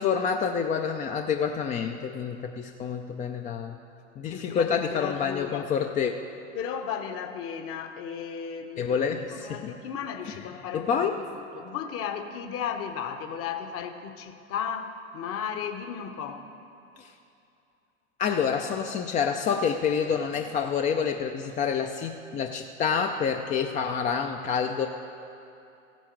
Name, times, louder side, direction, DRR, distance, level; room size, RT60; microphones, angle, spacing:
voice 1, 0.0-3.8 4.2-6.1 8.8-9.7 10.7-11.2 17.0-17.1 18.2-24.9, left 6 dB, 20° left, 5 dB, 0.4 m, -28 dB
voice 2, 4.3-5.7 6.5-16.4, left 7 dB, 40° left, 7 dB, 1.0 m, -35 dB
15.0 x 9.2 x 4.6 m, 2.7 s
hypercardioid pair, 90°, 36 cm